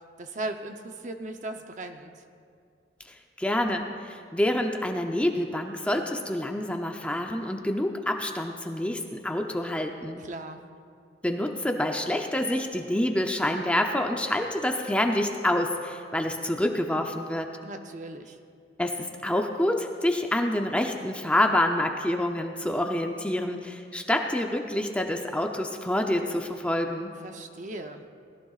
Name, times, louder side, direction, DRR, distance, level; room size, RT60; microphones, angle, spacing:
voice 1, 0.2-2.1 10.2-10.6 17.6-18.4 27.2-28.0, right 2 dB, 40° right, 6 dB, 0.7 m, -37 dB
voice 2, 3.0-10.2 11.2-17.5 18.8-27.1, left 1 dB, 5° left, 3 dB, 0.6 m, -27 dB
20.5 x 14.5 x 2.4 m, 2.3 s
head